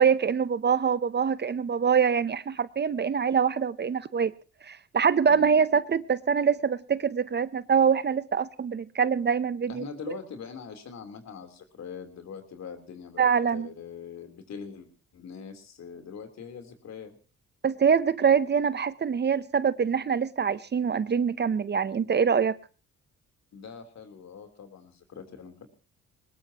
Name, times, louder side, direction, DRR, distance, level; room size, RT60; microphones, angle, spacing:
voice 1, 0.0-4.3 4.6-9.8 13.2-13.7 17.6-22.5, right 6 dB, 35° right, 0.7 m, -24 dB
voice 2, 9.7-17.2 23.5-25.7, left 6 dB, 60° left, 3.6 m, -43 dB
21.5 x 20.0 x 2.9 m
cardioid pair, 90°, 30 cm